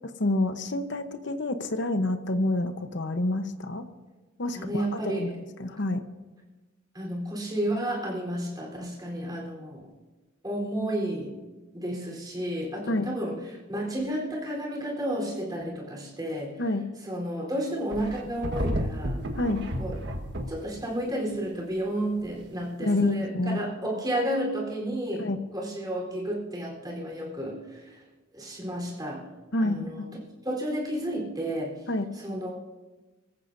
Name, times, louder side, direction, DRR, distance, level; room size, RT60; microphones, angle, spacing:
voice 1, 0.0-3.8 4.4-6.0 12.9-13.1 16.6-16.8 19.4-19.6 22.8-23.7 25.2-25.4 29.5-30.1 31.9-32.1, left 2 dB, 60° left, 8 dB, 1.0 m, -28 dB
voice 2, 4.5-5.4 6.9-9.9 10.4-11.4 11.7-16.6 17.0-19.2 19.8-20.0 20.5-28.0 28.3-29.2 29.6-30.1 30.4-31.8 32.1-32.6, right 1 dB, 20° right, -2 dB, 4.0 m, -32 dB
sound 1, 17.9-20.7 22.2-22.3, equal, 60° right, 1.6 m, -32 dB
24.5 x 15.0 x 2.7 m, 1.2 s
head